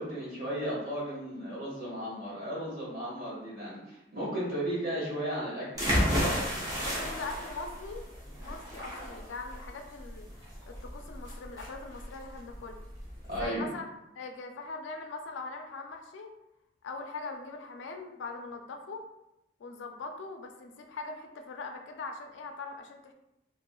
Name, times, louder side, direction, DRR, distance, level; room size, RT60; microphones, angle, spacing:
voice 1, 0.0-5.9 13.3-13.7, right 1 dB, 45° right, -8 dB, 1.3 m, -35 dB
sound 1, 5.8-13.4, equal, 20° right, 0.6 m, -32 dB
voice 2, 6.8-8.0 8.4-10.3 10.7-12.8 13.3-13.9 14.2-16.3 16.8-19.0 19.6-23.1, left 3 dB, 70° left, 4 dB, 0.3 m, -41 dB
2.9 x 2.5 x 2.2 m, 0.88 s
head